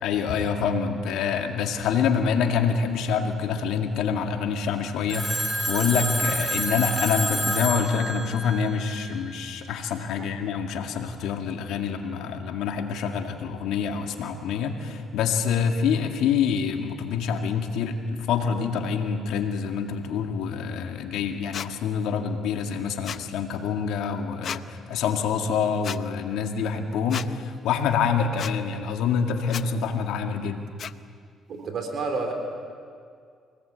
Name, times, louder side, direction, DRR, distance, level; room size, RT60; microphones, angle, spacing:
voice 1, 0.0-30.6, left 6 dB, 85° left, 4 dB, 2.1 m, -26 dB
Telephone, 5.1-9.3, right 1 dB, 20° right, 3.6 m, -29 dB
sound 1, 21.5-21.7 23.0-23.2 24.4-24.6 25.8-26.0 27.1-27.3 28.4-28.5 29.5-29.6 30.8-30.9, left 8 dB, 60° left, 0.7 m, -33 dB
voice 2, 31.5-32.3, right 4 dB, 60° right, 4 dB, 3.8 m, -30 dB
24.5 x 18.5 x 8.5 m, 2.2 s
supercardioid pair, 75°, 0 cm